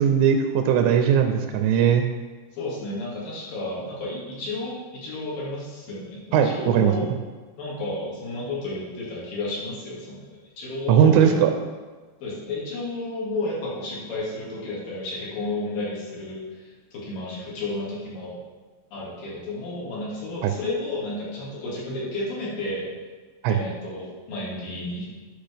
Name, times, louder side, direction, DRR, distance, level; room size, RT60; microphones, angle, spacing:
voice 1, 0.0-2.0 6.3-6.9 10.9-11.5 20.4-20.5 23.4-23.6, right 8 dB, 85° right, 5 dB, 3.0 m, -19 dB
voice 2, 2.5-7.1 7.6-10.2 10.6-11.4 12.2-18.4 18.9-22.9 23.5-25.0, left 2 dB, 55° left, -7 dB, 3.5 m, -32 dB
12.0 x 5.9 x 3.4 m, 1.3 s
omnidirectional pair, 5.2 m